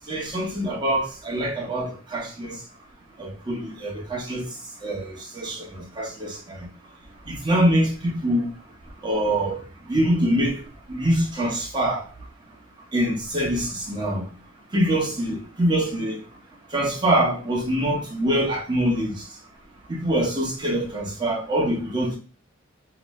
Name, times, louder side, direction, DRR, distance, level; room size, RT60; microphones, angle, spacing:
voice 1, 0.1-2.6 3.2-4.5 4.8-6.7 7.3-8.5 9.0-9.6 9.9-10.6 10.9-12.1 12.9-14.2 14.7-16.2 16.7-19.2 19.9-22.2, right 1 dB, 20° right, 1.0 m, -24 dB
3.0 x 2.1 x 3.0 m
head